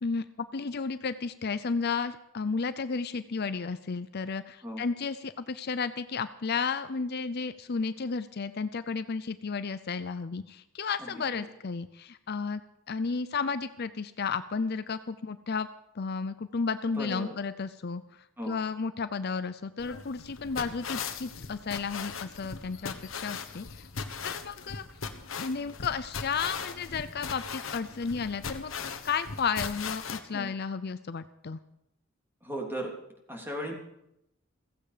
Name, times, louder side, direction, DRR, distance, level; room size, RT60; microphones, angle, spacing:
voice 1, 0.0-12.6 12.9-15.7 16.0-18.0 18.5-23.9 24.2-24.8 25.4-31.6, left 5 dB, 55° left, 12 dB, 0.6 m, -33 dB
voice 2, 11.0-11.5 16.9-17.4 18.4-18.6 30.3-30.5 32.4-32.9 33.3-33.7, equal, 10° right, 0 dB, 3.2 m, -37 dB
sound 1, 19.8-30.2, left 5 dB, 80° left, 1.3 m, -39 dB
15.5 x 15.5 x 5.0 m, 0.82 s
head